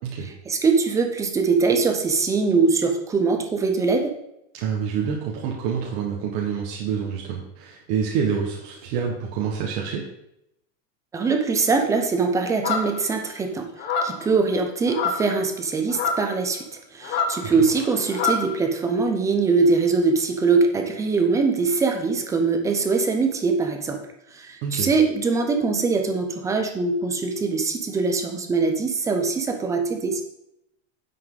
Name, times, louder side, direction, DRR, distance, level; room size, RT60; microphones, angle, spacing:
voice 1, 0.5-4.1 11.1-13.7 14.0-16.6 16.9-24.0 24.3-30.2, right 4 dB, 10° right, 4 dB, 0.5 m, -22 dB
voice 2, 4.5-10.0 17.4-17.6 24.6-24.9, right 7 dB, 45° right, -2 dB, 1.6 m, -27 dB
sound 1, 12.6-13.1 13.8-14.3 14.9-15.3 15.9-16.3 17.0-18.5, left 4 dB, 30° left, 1.2 m, -26 dB
9.6 x 7.6 x 4.0 m, 0.80 s
supercardioid pair, 175°, 39 cm